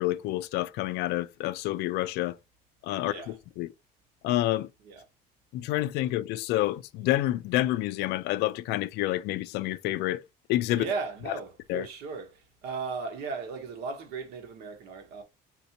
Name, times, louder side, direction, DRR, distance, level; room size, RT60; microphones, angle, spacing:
voice 1, 0.0-2.3 2.8-3.7 4.2-4.7 5.5-10.2 10.5-10.8 11.7-11.9, left 16 dB, 80° left, 0.4 m, -28 dB
voice 2, 3.0-3.4 4.8-5.0 10.7-15.2, right 4 dB, 80° right, 1.2 m, -36 dB
4.3 x 2.7 x 2.8 m
cardioid pair, 160°, 17 cm